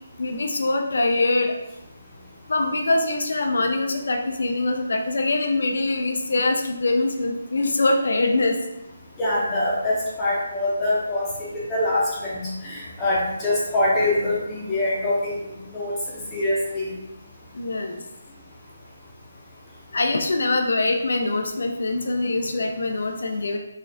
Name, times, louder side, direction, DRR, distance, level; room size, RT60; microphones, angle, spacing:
voice 1, 0.2-1.6 2.5-8.6 17.5-18.0 19.9-23.6, left 2 dB, 75° left, 4 dB, 0.4 m, -23 dB
voice 2, 9.2-11.3 11.7-15.3 15.7-15.9 16.3-16.9, left 1 dB, 15° left, -7 dB, 0.6 m, -24 dB
4.2 x 2.4 x 2.5 m, 0.91 s
hypercardioid pair, 170°, 0 cm